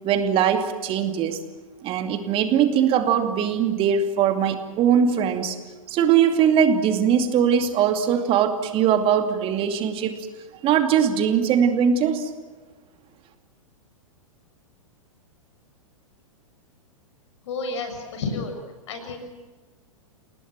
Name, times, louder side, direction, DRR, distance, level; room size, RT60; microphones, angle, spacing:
voice 1, 0.0-1.4 1.8-5.6 5.9-10.2 10.6-12.3, right 8 dB, 30° right, 7 dB, 2.5 m, -21 dB
voice 2, 17.4-18.6 18.9-19.3, left 3 dB, 55° left, 6 dB, 6.7 m, -31 dB
29.0 x 18.5 x 7.6 m, 1.3 s
figure-of-eight pair, 105°, 18 cm